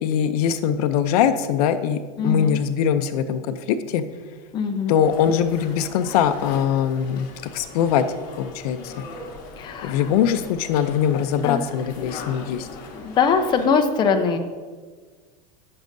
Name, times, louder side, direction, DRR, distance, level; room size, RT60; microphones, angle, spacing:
voice 1, 0.0-4.0 4.9-7.3 7.5-8.0 8.4-8.9 9.8-12.7, left 8 dB, 70° left, 10 dB, 0.5 m, -22 dB
voice 2, 2.2-2.6 4.5-4.9 9.6-10.0 11.4-11.6 12.0-12.2 12.6-14.4, left 5 dB, 20° left, 5 dB, 0.6 m, -22 dB
sound 1, 5.0-13.7, left 3 dB, 45° left, 1.6 m, -40 dB
14.5 x 6.3 x 2.6 m, 1.5 s
supercardioid pair, 150°, 20 cm